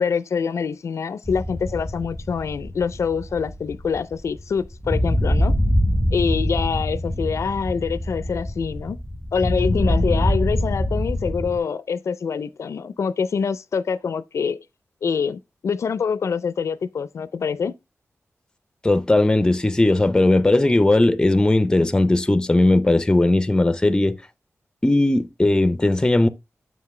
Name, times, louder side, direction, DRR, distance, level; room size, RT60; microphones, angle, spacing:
voice 1, 0.0-5.5 6.1-9.0 9.3-14.6 15.0-17.7, left 6 dB, 70° left, 0.4 m, -25 dB
sound 1, 1.2-11.6, equal, 5° right, 0.9 m, -24 dB
voice 2, 18.8-24.2 24.8-26.3, left 2 dB, 15° left, 0.5 m, -18 dB
7.3 x 5.8 x 3.1 m
wide cardioid pair, 155°, 5 cm